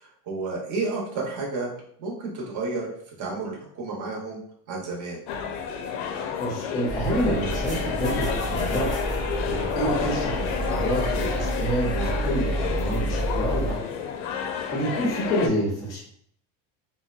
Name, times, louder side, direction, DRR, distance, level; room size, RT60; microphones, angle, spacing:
voice 1, 0.0-1.7 2.0-2.9 3.2-4.4 4.7-5.2, right 3 dB, 45° right, -3 dB, 0.8 m, -31 dB
sound 1, 5.3-15.5, left 7 dB, 75° left, 0.5 m, -30 dB
voice 2, 6.4-8.9 9.4-13.8 14.6-16.0, equal, 10° left, -3 dB, 0.4 m, -28 dB
sound 2, 6.9-13.7, right 2 dB, 10° right, 0.8 m, -29 dB
2.6 x 2.1 x 2.3 m, 0.65 s
cardioid pair, 155°, 44 cm